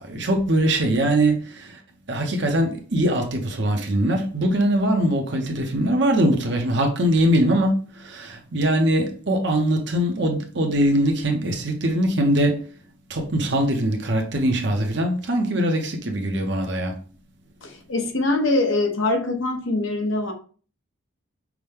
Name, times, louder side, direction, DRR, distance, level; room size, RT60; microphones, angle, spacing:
voice 1, 0.1-1.4 2.1-7.8 8.1-12.6 13.1-16.9, right 1 dB, 55° right, 0.8 m, -22 dB
voice 2, 17.6-20.3, left 2 dB, 75° left, 1.0 m, -23 dB
6.0 x 2.2 x 3.4 m
head